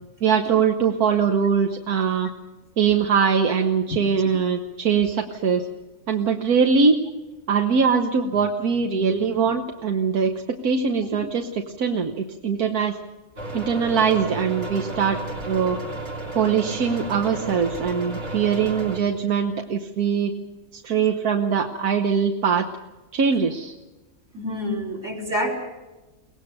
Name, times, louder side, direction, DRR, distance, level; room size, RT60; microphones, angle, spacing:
voice 1, 0.2-2.3 2.8-5.7 6.1-7.0 7.5-10.3 10.6-13.0 13.5-15.2 15.4-15.8 16.3-20.3 20.7-22.7 23.1-23.7, right 6 dB, 85° right, 4 dB, 1.6 m, -22 dB
sound 1, 13.4-19.0, right 2 dB, 70° right, 3.4 m, -33 dB
voice 2, 24.3-25.5, equal, 55° right, 3 dB, 5.0 m, -27 dB
23.5 x 18.5 x 6.8 m, 1.1 s
omnidirectional pair, 1.5 m